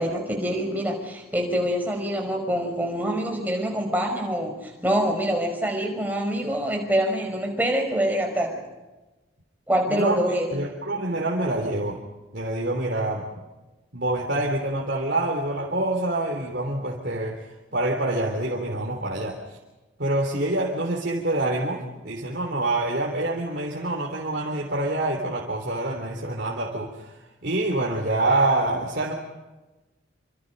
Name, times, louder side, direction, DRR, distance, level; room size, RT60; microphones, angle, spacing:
voice 1, 0.0-8.7 9.7-10.5, equal, 10° right, 2 dB, 5.5 m, -25 dB
voice 2, 9.9-10.2 10.5-12.0 12.3-13.4 13.9-17.4 17.7-19.4 20.0-29.1, right 2 dB, 55° right, 0 dB, 3.4 m, -26 dB
27.5 x 27.0 x 5.4 m, 1.1 s
head